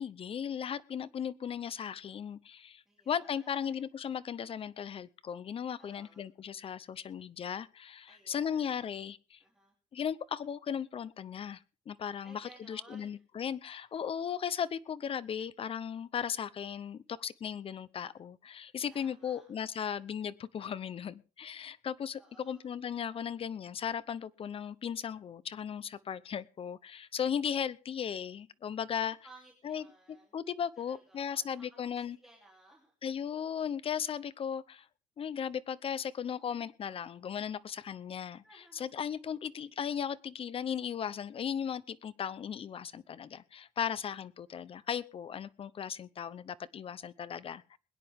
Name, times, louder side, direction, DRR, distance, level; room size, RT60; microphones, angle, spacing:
voice 1, 0.0-9.4 9.9-29.2 29.6-32.2 33.0-34.9 35.2-47.8, left 8 dB, 45° left, 18 dB, 0.8 m, -37 dB
voice 2, 2.9-3.8 5.8-6.2 8.1-8.9 9.4-9.7 12.2-13.1 18.9-19.5 22.2-22.6 29.0-30.4 30.8-31.7 31.9-32.9 38.4-39.0, right 2 dB, 5° right, -2 dB, 3.2 m, -59 dB
21.5 x 10.0 x 3.6 m, 0.35 s
cardioid pair, 120°, 14 cm